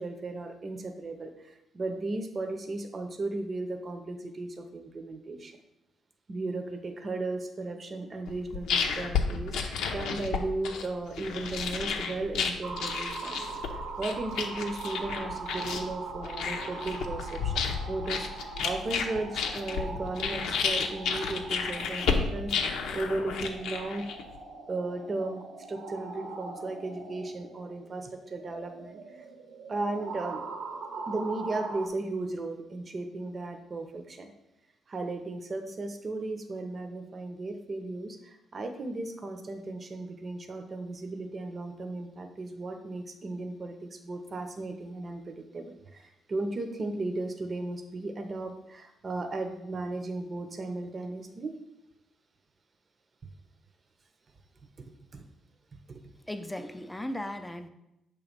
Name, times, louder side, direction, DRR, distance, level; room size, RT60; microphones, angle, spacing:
voice 1, 0.0-5.6 6.3-17.6 17.9-24.1 24.7-29.2 29.7-30.4 31.1-34.3 34.9-51.5 54.8-54.9 55.1-55.3 55.9-56.0, right 2 dB, 35° right, 6 dB, 0.7 m, -36 dB
sound 1, 8.3-24.4, left 5 dB, 80° left, 0.7 m, -32 dB
sound 2, 12.6-31.9, right 4 dB, 70° right, 0.8 m, -41 dB
voice 2, 56.3-57.7, left 1 dB, 10° left, 8 dB, 0.5 m, -36 dB
6.4 x 3.1 x 5.1 m, 0.89 s
cardioid pair, 90°, 0 cm